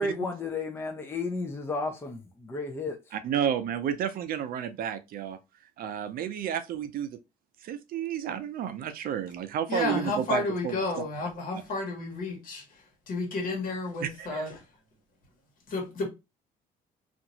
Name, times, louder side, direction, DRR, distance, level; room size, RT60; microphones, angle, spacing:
voice 1, 0.0-3.1, left 2 dB, 15° left, 0.5 m, -33 dB
voice 2, 3.1-5.4 5.8-7.2 7.6-10.8 11.5-11.6 14.0-14.5, right 9 dB, 60° right, 0.5 m, -31 dB
voice 3, 9.7-12.6 13.1-14.5 15.7-16.1, left 3 dB, 55° left, 1.5 m, -31 dB
2.8 x 2.5 x 2.7 m
cardioid pair, 110°, 17 cm